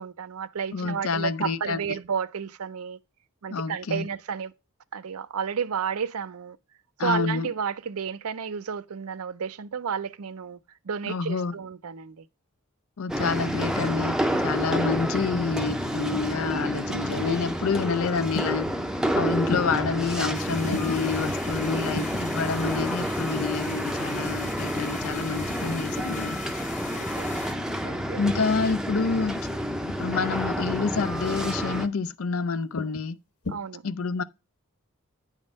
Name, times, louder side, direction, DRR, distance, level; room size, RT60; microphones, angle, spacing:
voice 1, 0.0-3.0 3.4-4.5 4.9-6.6 7.0-10.6 10.8-12.3 26.9-27.6 27.8-28.2 33.5-33.8, right 7 dB, 85° right, 0.5 m, -32 dB
voice 2, 0.7-1.8 3.5-4.1 7.0-7.5 11.1-11.6 13.0-14.2 14.4-18.7 19.1-26.4 28.2-29.5 29.9-33.2 33.8-34.2, left 5 dB, 70° left, 0.5 m, -28 dB
sound 1, 13.1-31.9, equal, 5° right, 0.6 m, -29 dB
sound 2, 14.0-14.5 15.4-15.8 16.9-17.3 18.3-18.8 19.5-20.0 20.7-21.0 21.9-22.3 23.4-23.7 24.8-25.0 26.0-26.3 27.0-27.3 28.3-28.6 29.5-29.8 30.8-31.1 31.6-31.9 32.8-33.1 33.4-33.6, left 2 dB, 85° left, 1.5 m, -37 dB
sound 3, 20.3-27.5, left 4 dB, 35° left, 1.1 m, -41 dB
9.7 x 3.7 x 5.1 m
head